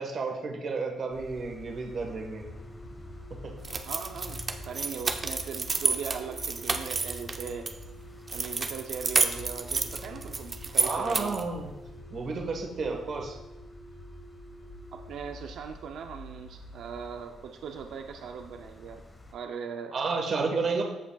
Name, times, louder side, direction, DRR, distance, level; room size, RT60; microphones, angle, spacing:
voice 1, 0.0-2.4 10.8-11.7 12.1-13.3 19.9-20.8, right 4 dB, 50° right, 2 dB, 1.3 m, -31 dB
sound 1, 1.1-19.3, left 1 dB, 15° left, 1.2 m, -47 dB
sound 2, 2.5-15.2, right 1 dB, 90° left, 0.9 m, -51 dB
sound 3, 3.6-7.7 8.3-11.5, right 4 dB, 35° right, 0.6 m, -30 dB
voice 2, 3.9-7.7 8.3-11.4 14.9-19.0 19.3-19.9 20.5-20.6, right 6 dB, 75° right, 4 dB, 0.5 m, -39 dB
14.5 x 5.0 x 2.3 m, 1.0 s
cardioid pair, 90°, 0 cm